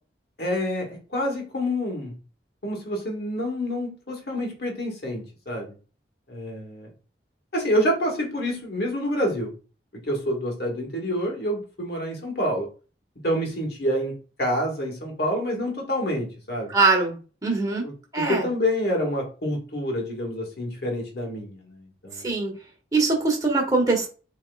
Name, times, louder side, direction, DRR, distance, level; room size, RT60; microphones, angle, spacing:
voice 1, 0.4-2.1 2.6-5.7 6.3-6.9 7.5-9.5 9.9-12.7 13.2-14.1 14.4-16.7 17.8-22.3, equal, 60° left, 1 dB, 1.7 m, -27 dB
voice 2, 16.7-17.1 17.4-17.9 18.1-18.5 22.2-22.5 22.9-24.1, right 3 dB, 20° right, 0 dB, 1.2 m, -22 dB
7.3 x 3.1 x 2.3 m, 0.36 s
head